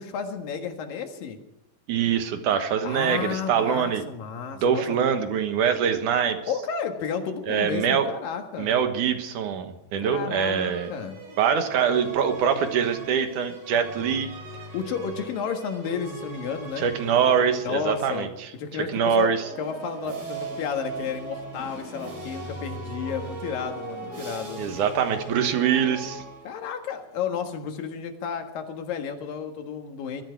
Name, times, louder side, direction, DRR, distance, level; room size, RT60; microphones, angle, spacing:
voice 1, 0.0-1.4 2.8-4.8 6.5-8.7 10.0-11.2 14.7-16.9 17.6-18.3 18.5-24.6 26.5-30.2, left 7 dB, 80° left, 5 dB, 3.4 m, -32 dB
voice 2, 1.9-4.0 4.6-6.4 7.5-8.1 8.6-10.9 11.4-14.3 16.8-18.5 18.9-19.4 24.6-26.2, right 7 dB, 65° right, 7 dB, 2.7 m, -24 dB
sound 1, 10.4-18.3 18.9-26.8, right 3 dB, 85° right, 6.2 m, -39 dB
21.5 x 13.5 x 4.7 m, 0.92 s
omnidirectional pair, 4.0 m